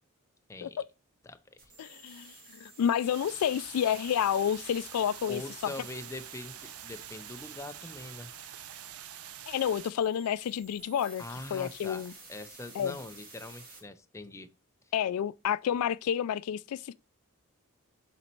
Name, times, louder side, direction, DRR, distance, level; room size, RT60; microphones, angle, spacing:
voice 1, 0.5-0.8 1.2-1.9 5.3-8.3 11.2-14.5, left 2 dB, 15° left, 0.5 m, -43 dB
sound 1, 1.6-13.8, right 3 dB, 45° right, 2.5 m, -54 dB
voice 2, 1.8-5.7 9.5-11.2 11.5-12.1 12.8-13.0 14.9-16.9, left 9 dB, 75° left, 0.3 m, -30 dB
sound 2, 3.0-9.9, right 10 dB, 75° right, 0.6 m, -46 dB
6.8 x 4.3 x 4.4 m
head